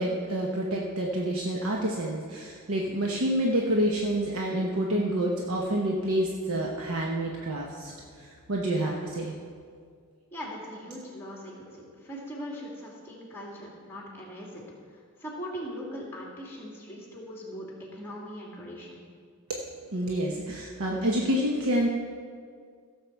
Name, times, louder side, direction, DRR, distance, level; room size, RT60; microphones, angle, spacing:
voice 1, 0.0-7.9 8.2-9.3 19.9-21.9, right 1 dB, 70° right, -1 dB, 1.0 m, -28 dB
voice 2, 8.7-9.0 10.3-14.6 14.9-19.0, equal, 10° left, -4 dB, 2.4 m, -40 dB
16.0 x 7.2 x 4.6 m, 2.1 s
head